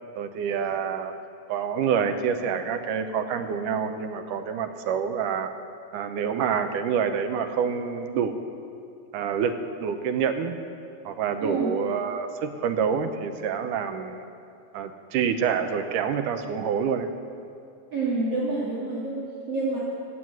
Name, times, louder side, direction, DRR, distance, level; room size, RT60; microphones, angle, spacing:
voice 1, 0.2-1.1 1.5-5.5 5.9-8.4 9.1-10.6 11.1-14.2 14.7-17.1, right 7 dB, 75° right, 7 dB, 2.3 m, -27 dB
voice 2, 11.4-11.7 17.9-19.8, right 3 dB, 50° right, -8 dB, 3.0 m, -28 dB
16.0 x 7.8 x 9.1 m, 2.5 s
omnidirectional pair, 3.8 m